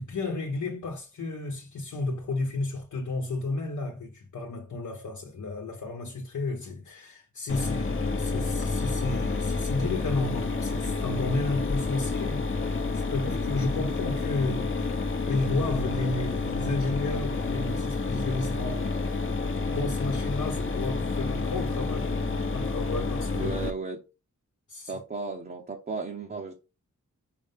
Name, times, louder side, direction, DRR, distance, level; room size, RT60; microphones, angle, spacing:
voice 1, 0.0-18.9 19.7-22.1 22.5-23.5 24.7-25.0, left 2 dB, 70° left, 1.0 m, -32 dB
Mechanisms, 7.5-23.7, left 3 dB, 40° left, 0.9 m, -29 dB
voice 2, 23.3-24.0 24.9-26.5, right 4 dB, 30° right, 0.8 m, -35 dB
5.3 x 5.0 x 3.6 m
wide cardioid pair, 145°, 31 cm